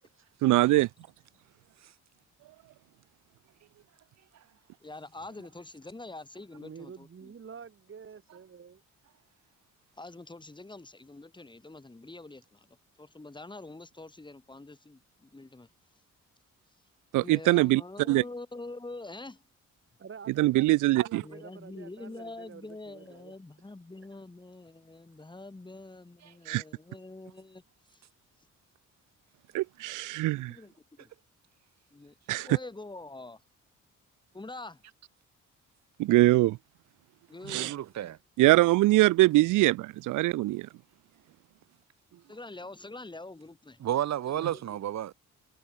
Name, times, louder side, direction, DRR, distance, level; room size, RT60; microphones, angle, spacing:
voice 1, 0.4-0.9 17.1-17.8 18.1-18.2 20.4-21.2 26.5-26.6 29.5-30.5 32.3-32.5 36.0-36.6 37.5-37.7 38.4-40.7, right 18 dB, 85° right, 0.7 m, -23 dB
voice 2, 4.8-7.3 10.0-12.7 13.0-15.7 17.1-19.4 21.2-27.6 27.9-28.0 30.2-31.1 31.9-33.4 34.3-34.8 37.3-37.7 42.3-43.8 44.3-44.8, left 2 dB, 15° left, 3.1 m, -45 dB
voice 3, 6.6-8.8 20.0-23.4 24.1-24.2, right 6 dB, 45° right, 6.0 m, -48 dB
voice 4, 37.5-38.2 42.1-42.2 43.8-45.1, right 11 dB, 65° right, 1.5 m, -32 dB
cardioid pair, 90°, 30 cm